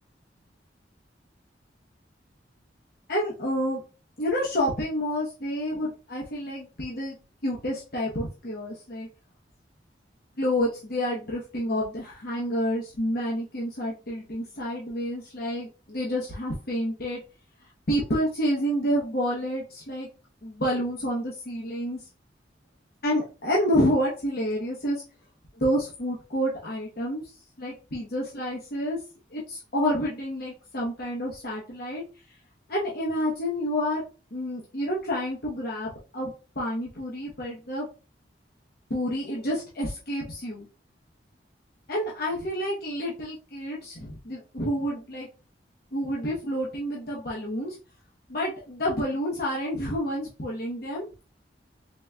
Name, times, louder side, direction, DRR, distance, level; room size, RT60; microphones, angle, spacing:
voice 1, 3.1-3.8 4.2-7.2 7.4-9.1 10.4-17.2 17.9-20.1 20.4-22.0 23.0-25.0 25.6-27.2 27.6-29.0 29.3-32.0 32.7-34.0 34.3-37.9 38.9-40.7 41.9-45.3 45.9-47.8 48.3-51.1, equal, 60° left, -4 dB, 1.0 m, -29 dB
3.9 x 3.3 x 2.3 m, 0.33 s
head